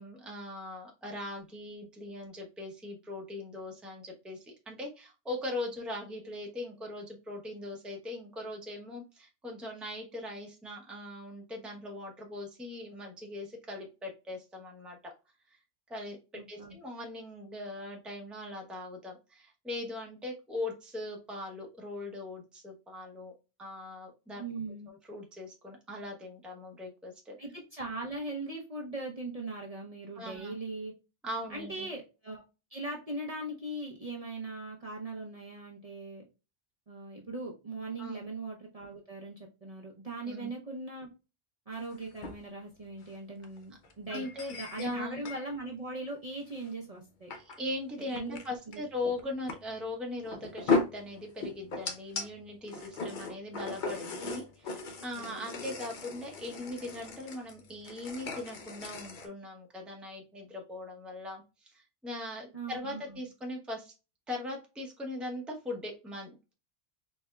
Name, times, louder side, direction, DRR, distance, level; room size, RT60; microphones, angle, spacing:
voice 1, 0.0-15.1 15.5-15.6 15.9-16.2 16.5-23.3 23.6-24.4 24.9-27.4 30.2-30.5 31.2-31.9 38.0-38.2 40.2-40.5 44.1-45.3 47.4-63.9 64.3-66.5, left 2 dB, ahead, 0 dB, 0.7 m, -40 dB
voice 2, 16.3-16.8 24.4-24.9 27.4-30.9 31.5-32.4 32.7-36.2 36.9-41.1 41.7-47.3 48.1-48.4 48.7-48.8 54.2-54.4 55.2-55.5 62.5-63.3, right 2 dB, 35° right, -2 dB, 0.8 m, -40 dB
sound 1, 41.8-42.4 43.0-43.1 43.4-43.6 43.8-45.5 46.6-46.7 47.3-47.7 48.0-48.5 48.7-48.8 49.2-49.5 50.2-52.3 52.6-59.3, left 4 dB, 50° left, 0.8 m, -36 dB
4.2 x 3.4 x 2.3 m, 0.30 s
omnidirectional pair, 1.2 m